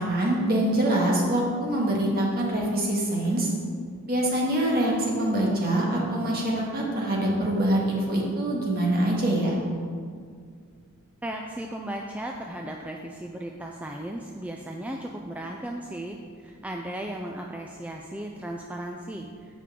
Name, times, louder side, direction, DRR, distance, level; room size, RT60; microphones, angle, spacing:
voice 1, 0.0-3.5 4.1-9.6, right 1 dB, 40° right, -3 dB, 1.9 m, -24 dB
voice 2, 11.2-19.6, right 1 dB, 5° right, 1 dB, 0.3 m, -36 dB
15.0 x 5.2 x 3.7 m, 2.1 s
head